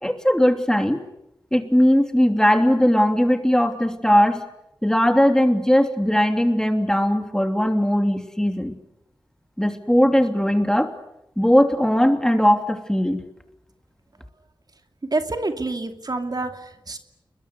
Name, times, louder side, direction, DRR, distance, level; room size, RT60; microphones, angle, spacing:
voice 1, 0.0-1.0 1.5-4.4 4.8-8.7 9.6-10.9 11.4-13.2, equal, 5° left, 6 dB, 3.1 m, -19 dB
voice 2, 15.1-17.0, right 2 dB, 50° right, 6 dB, 2.6 m, -27 dB
30.0 x 22.5 x 8.3 m, 0.82 s
wide cardioid pair, 65°, 9 cm